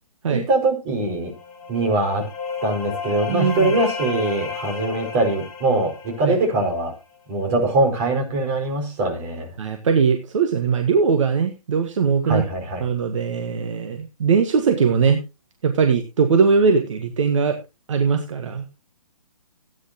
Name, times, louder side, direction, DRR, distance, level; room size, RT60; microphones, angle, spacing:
voice 1, 0.3-1.3 1.7-2.2 2.6-6.9 7.3-9.5 12.3-12.9, right 2 dB, 30° right, 1 dB, 5.2 m, -22 dB
sound 1, 1.2-6.9, left 5 dB, 25° left, 4.6 m, -33 dB
voice 2, 3.3-3.7 6.2-6.4 9.6-12.4 12.8-15.2 15.6-17.6 17.9-18.6, right 5 dB, 55° right, 5 dB, 1.7 m, -20 dB
17.0 x 9.7 x 2.9 m, 0.27 s
figure-of-eight pair, 140°, 19 cm